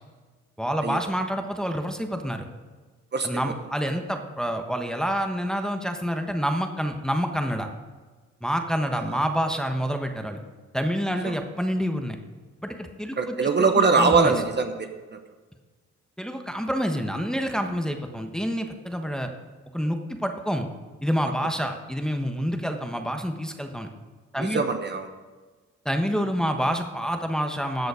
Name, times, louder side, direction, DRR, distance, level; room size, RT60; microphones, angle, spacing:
voice 1, 0.6-2.5 3.2-7.7 8.4-10.4 10.7-12.2 12.6-13.3 13.9-14.3 16.2-19.3 19.7-20.7 21.0-23.9 24.3-24.6 25.8-27.9, equal, ahead, 4 dB, 1.2 m, -27 dB
voice 2, 13.2-15.2 24.4-25.1, right 4 dB, 35° right, 6 dB, 1.1 m, -23 dB
13.5 x 7.7 x 5.0 m, 1.3 s
cardioid pair, 90°, 30 cm